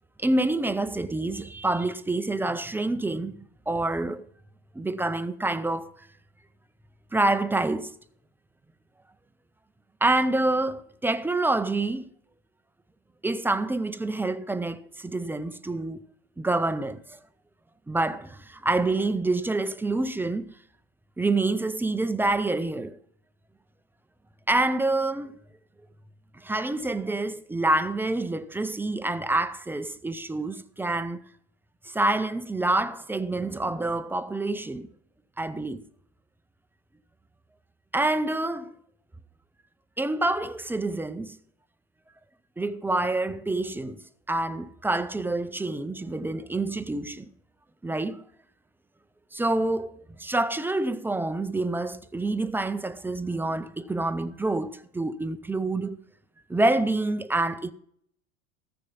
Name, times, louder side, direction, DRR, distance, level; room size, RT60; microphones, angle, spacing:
voice 1, 0.2-4.2 4.8-5.9 7.1-7.9 10.0-12.1 13.2-16.0 16.4-17.2 17.9-20.5 21.2-23.0 24.5-25.4 26.4-31.2 31.9-34.9 35.4-35.8 37.9-38.7 40.0-41.4 42.6-44.0 44.3-47.3 47.8-48.2 49.3-56.0 56.5-57.7, right 2 dB, 5° right, 0.3 m, -27 dB
14.5 x 6.8 x 5.4 m
supercardioid pair, 125°, 36 cm